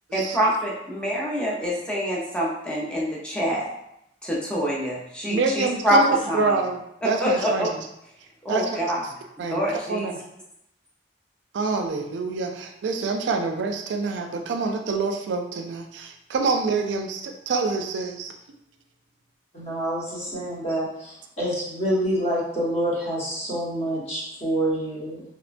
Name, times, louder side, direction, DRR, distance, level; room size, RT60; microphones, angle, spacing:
voice 1, 0.1-3.7 4.2-6.0 6.3-6.4 7.2-7.7 8.4-9.0 9.5-10.1, equal, 5° left, -5 dB, 0.5 m, -25 dB
voice 2, 5.3-7.8 8.5-8.7 9.4-9.6 9.9-10.1 11.5-18.3, right 4 dB, 85° right, 4 dB, 0.3 m, -26 dB
voice 3, 19.5-25.2, right 1 dB, 35° left, -7 dB, 0.9 m, -27 dB
2.9 x 2.1 x 2.5 m, 0.79 s
head